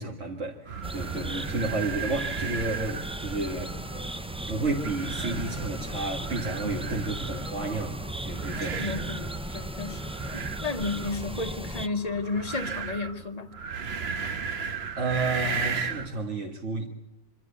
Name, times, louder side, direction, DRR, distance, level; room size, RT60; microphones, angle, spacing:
voice 1, 0.0-3.7 4.5-9.1 9.4-9.6 14.5-16.9, right 2 dB, 75° right, 2.2 m, -32 dB
sound 1, 0.7-16.2, right 5 dB, 60° right, 1.3 m, -36 dB
sound 2, 0.8-11.9, right 1 dB, 10° right, 0.3 m, -36 dB
voice 2, 8.6-10.0 10.3-13.5, left 3 dB, 35° left, 1.2 m, -33 dB
25.5 x 13.0 x 8.3 m
omnidirectional pair, 1.2 m